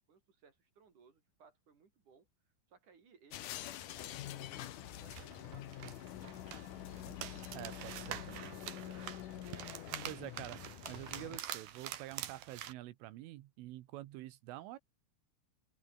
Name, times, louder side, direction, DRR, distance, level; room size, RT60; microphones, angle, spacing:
voice 1, 0.0-3.5 3.9-6.2 7.9-9.1, right 5 dB, 40° right, 5.1 m, -65 dB
sound 1, 3.3-11.4, left 12 dB, 80° left, 1.9 m, -46 dB
sound 2, 4.8-12.7, right 11 dB, 60° right, 3.0 m, -46 dB
voice 2, 7.5-8.5 10.1-14.8, right 15 dB, 80° right, 3.7 m, -47 dB
open air
omnidirectional pair, 5.6 m